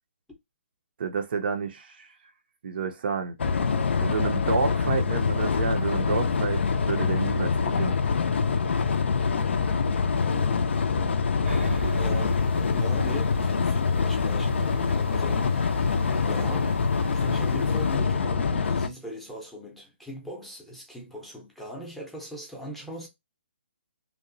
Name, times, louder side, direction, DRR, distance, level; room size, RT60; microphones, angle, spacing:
voice 1, 1.0-2.1 2.6-3.3 4.0-8.2, right 5 dB, 50° right, 0.5 m, -30 dB
sound 1, 3.4-18.9, left 5 dB, 70° left, 0.4 m, -25 dB
voice 2, 10.2-10.7 12.0-12.4 12.7-15.6 16.3-16.8 17.1-23.1, equal, ahead, 0.6 m, -39 dB
sound 2, 11.4-18.0, right 2 dB, 85° right, 0.8 m, -39 dB
2.9 x 2.1 x 2.5 m
hypercardioid pair, 150°, 7 cm